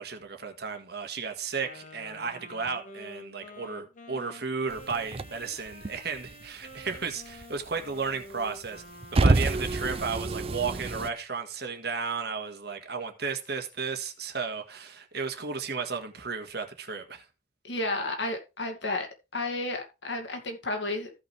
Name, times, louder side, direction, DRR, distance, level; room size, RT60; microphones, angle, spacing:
voice 1, 0.0-8.8 9.1-17.3, right 5 dB, 60° right, 1.8 m, -34 dB
Wind instrument woodwind instrument, 1.6-10.2, left 1 dB, 45° left, 1.4 m, -49 dB
sound 1, 4.7-6.5 6.7-8.1 8.5-11.1, right 2 dB, 30° right, 0.5 m, -27 dB
voice 2, 17.6-21.1, left 2 dB, 85° left, 2.4 m, -32 dB
15.0 x 5.5 x 3.4 m
head